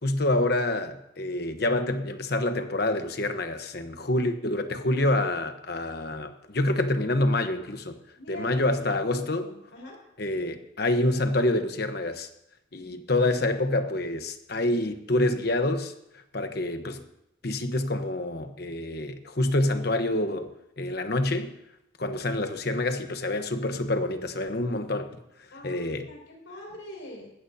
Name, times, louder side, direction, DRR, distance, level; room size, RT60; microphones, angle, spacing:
voice 1, 0.0-8.0 8.3-9.5 10.2-12.3 12.7-15.9 16.3-17.0 17.4-21.5 22.0-25.1 25.6-26.1, left 1 dB, 55° left, 8 dB, 1.1 m, -27 dB
voice 2, 8.2-9.9 25.5-26.2 26.5-27.3, equal, 75° left, -1 dB, 5.7 m, -43 dB
19.5 x 16.0 x 2.8 m, 0.82 s
head